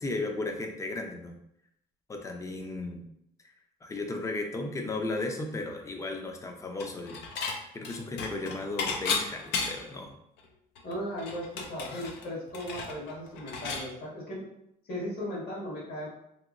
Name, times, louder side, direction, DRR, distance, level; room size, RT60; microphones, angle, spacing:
voice 1, 0.0-1.4 2.1-3.1 3.8-7.2 7.7-10.1, left 2 dB, 20° left, 3 dB, 0.5 m, -35 dB
Dishes pots and pans / Chink clink, 6.8-7.6 7.8-10.0 10.4-10.5 10.8-13.9, left 4 dB, 80° left, 0.5 m, -34 dB
voice 2, 10.8-14.4 14.8-16.1, equal, 65° left, -4 dB, 1.5 m, -37 dB
2.9 x 2.8 x 2.5 m, 0.77 s
cardioid pair, 110°, 17 cm